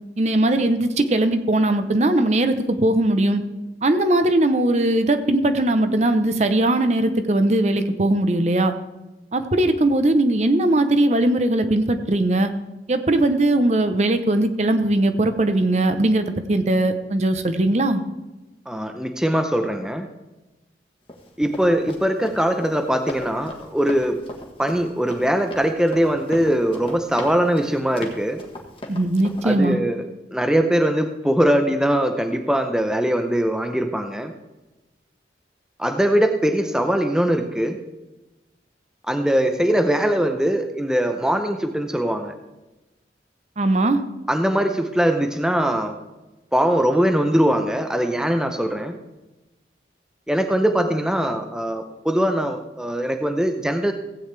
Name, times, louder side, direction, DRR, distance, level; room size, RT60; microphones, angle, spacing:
voice 1, 0.2-3.4 3.8-8.7 9.3-12.5 12.9-18.0 28.9-29.8 43.6-44.0, right 1 dB, 40° right, 9 dB, 0.7 m, -19 dB
voice 2, 18.7-20.1 21.4-24.2 24.6-28.4 29.4-30.0 30.3-34.3 35.8-37.8 39.1-42.3 44.3-45.9 46.5-49.0 50.3-53.9, equal, 5° right, 6 dB, 0.5 m, -21 dB
Run, 21.1-29.5, left 1 dB, 30° left, 1.4 m, -38 dB
16.0 x 8.6 x 3.3 m, 1.1 s
head